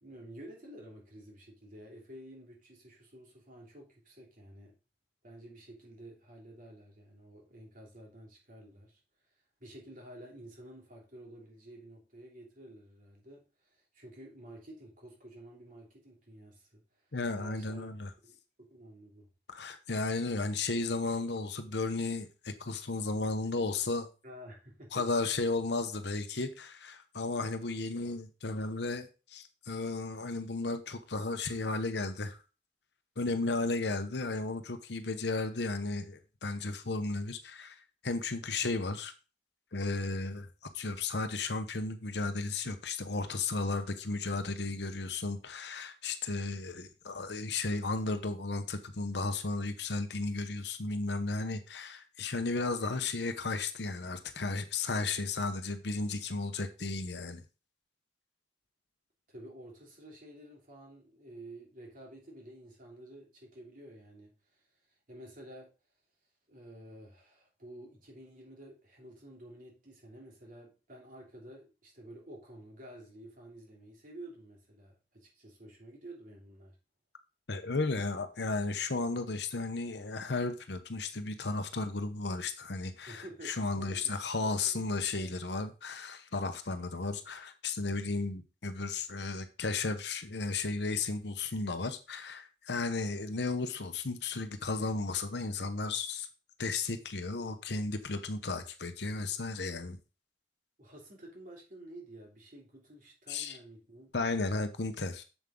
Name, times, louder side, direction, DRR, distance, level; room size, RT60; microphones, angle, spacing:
voice 1, 0.0-4.7 5.2-9.0 9.6-16.8 17.3-17.9 18.2-19.3 24.2-25.0 44.8-45.0 59.3-64.6 65.1-65.7 66.5-76.8 83.1-84.1 84.4-84.8 85.1-85.4 100.8-104.1, right 1 dB, 45° right, 3.0 m, -51 dB
voice 2, 17.1-18.1 19.5-24.1 24.9-32.4 33.2-39.1 39.7-40.5 40.7-57.4 77.5-96.3 96.6-100.0 103.3-103.6 104.1-105.2, left 3 dB, 65° left, 0.9 m, -34 dB
7.4 x 7.3 x 3.8 m
head